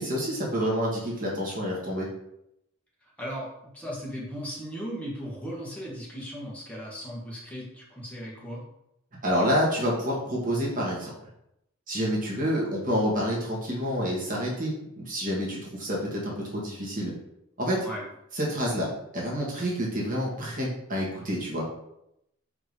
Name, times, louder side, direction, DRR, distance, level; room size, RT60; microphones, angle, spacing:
voice 1, 0.0-2.1 9.2-11.1 11.9-17.1 17.6-17.8 18.3-18.9 19.1-21.7, equal, 40° right, -4 dB, 1.8 m, -28 dB
voice 2, 3.2-3.5 3.7-8.6 17.8-18.0, equal, 5° left, -5 dB, 1.7 m, -37 dB
4.9 x 3.6 x 5.4 m, 0.82 s
head